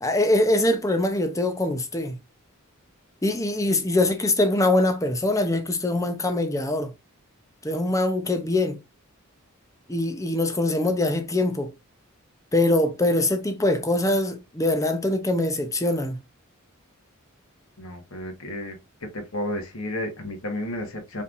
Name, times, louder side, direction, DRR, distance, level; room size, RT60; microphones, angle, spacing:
voice 1, 0.0-2.2 3.2-6.9 7.6-8.8 9.9-11.7 12.5-16.2, left 1 dB, 15° left, 0.7 m, -23 dB
voice 2, 17.8-18.7 19.1-21.2, left 1 dB, 70° left, 1.6 m, -32 dB
5.4 x 3.3 x 2.6 m
head